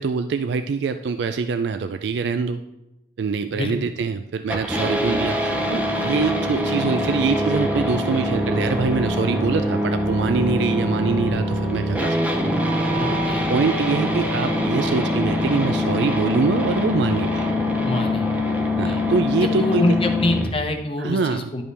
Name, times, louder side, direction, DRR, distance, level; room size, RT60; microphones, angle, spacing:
voice 1, 0.0-2.6 3.2-12.2 13.5-17.5 18.8-20.0 21.0-21.5, right 5 dB, 75° right, 9 dB, 0.3 m, -24 dB
sound 1, 4.5-20.5, left 1 dB, 10° right, 0.7 m, -23 dB
voice 2, 13.0-13.5 17.8-18.3 18.8-19.0 19.4-21.6, left 1 dB, 30° left, 5 dB, 0.8 m, -25 dB
11.0 x 5.3 x 3.3 m, 0.92 s
head